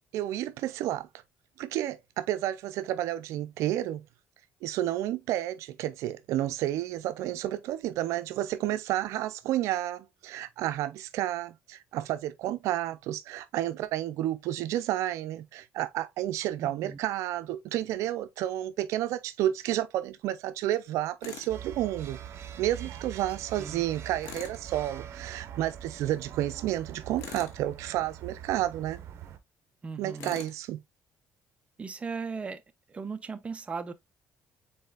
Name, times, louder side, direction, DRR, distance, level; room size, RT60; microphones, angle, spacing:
voice 1, 0.1-1.1 1.6-4.0 4.6-22.2 22.6-29.0 30.0-30.8, right 13 dB, 80° right, 0.4 m, -31 dB
voice 2, 16.6-17.0 23.6-23.8 29.8-30.3 31.8-32.6 32.9-33.9, right 5 dB, 25° right, 0.6 m, -37 dB
Tools, 21.2-21.5 24.2-24.6 27.2-27.6 30.2-30.6, left 8 dB, 85° left, 1.1 m, -43 dB
sound 1, 21.5-29.4, right 9 dB, 60° right, 0.8 m, -43 dB
5.4 x 4.1 x 2.3 m
cardioid pair, 110°, 5 cm